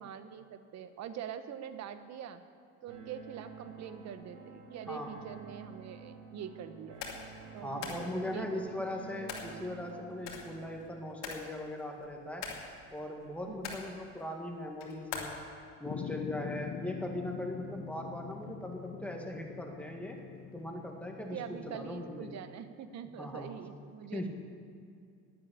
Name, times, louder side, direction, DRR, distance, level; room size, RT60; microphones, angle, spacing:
voice 1, 0.0-2.4 2.8-7.1 7.5-8.6 13.5-13.8 21.3-24.3, right 8 dB, 55° right, 11 dB, 1.0 m, -44 dB
sound 1, 2.9-10.9, right 4 dB, 75° right, 4.7 m, -50 dB
sound 2, 7.0-7.3 7.8-8.1 9.3-9.6 10.3-10.9 11.2-11.6 12.0-12.8 13.5-14.0 14.8-15.3, left 6 dB, 90° left, 2.5 m, -41 dB
voice 2, 7.6-12.5 12.9-15.4 15.8-20.2 20.5-22.3 23.2-23.5 24.1-24.3, left 1 dB, 5° left, 1 dB, 1.9 m, -39 dB
sound 3, 15.8-22.3, left 9 dB, 45° left, 0.7 m, -44 dB
12.0 x 8.9 x 9.7 m, 2.3 s
cardioid pair, 120°, 32 cm